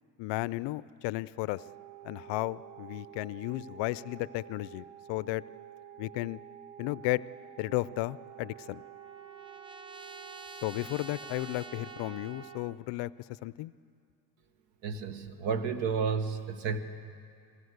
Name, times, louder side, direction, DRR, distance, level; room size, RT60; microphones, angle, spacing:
voice 1, 0.2-1.6 2.0-5.4 6.0-6.4 6.8-7.2 7.6-8.8 10.6-13.1 13.4-13.7, left 19 dB, 60° left, 19 dB, 0.5 m, -34 dB
sound 1, 1.6-12.6, right 10 dB, 45° right, 1.6 m, -50 dB
Trumpet, 8.0-12.8, right 3 dB, 10° right, 0.5 m, -49 dB
voice 2, 14.8-16.8, right 5 dB, 60° right, 9 dB, 1.6 m, -31 dB
22.0 x 16.5 x 8.0 m, 2.3 s
supercardioid pair, 110°, 49 cm